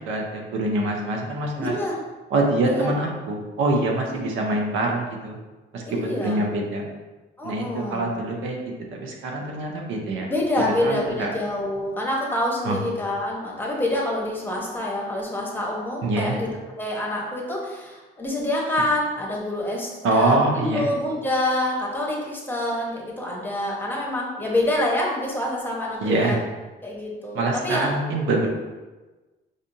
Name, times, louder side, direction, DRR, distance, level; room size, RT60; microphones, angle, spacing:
voice 1, 0.0-1.7 2.3-5.4 5.7-6.8 7.4-8.6 8.9-10.3 10.8-11.3 12.6-12.8 16.0-16.4 20.0-20.9 26.0-26.3 27.3-28.5, right 2 dB, 90° right, 1 dB, 0.7 m, -24 dB
voice 2, 1.6-2.0 2.6-2.9 4.0-4.3 5.8-6.5 7.4-8.1 10.3-16.5 16.8-26.4 26.8-27.9, left 1 dB, 10° left, -3 dB, 1.0 m, -27 dB
5.0 x 2.6 x 2.6 m, 1.2 s
cardioid pair, 90°, 20 cm